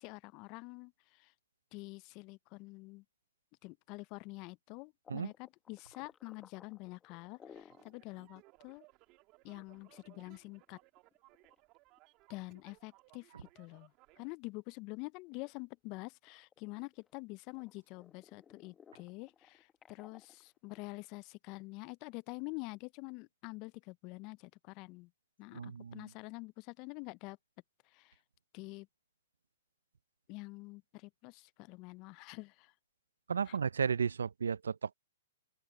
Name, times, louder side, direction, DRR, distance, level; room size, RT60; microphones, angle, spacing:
voice 1, 0.0-1.3 1.7-3.0 3.6-8.9 9.4-10.8 12.3-13.9 14.2-25.1 25.4-27.4 27.9-28.1 28.5-28.9 30.3-32.7 33.5-33.6, left 25 dB, 35° left, 0.5 m, -47 dB
sound 1, 5.0-8.0 8.4-8.5 8.8-8.9 9.7-12.0 12.5-12.9 13.3-13.5 14.0-15.0 15.3-17.1 17.5-21.1, left 7 dB, 15° left, 1.3 m, -60 dB
sound 2, 7.2-14.3, right 22 dB, 35° right, 2.2 m, -64 dB
voice 2, 25.5-26.1 33.3-34.9, right 6 dB, 85° right, 0.5 m, -34 dB
open air
hypercardioid pair, 135°, 0 cm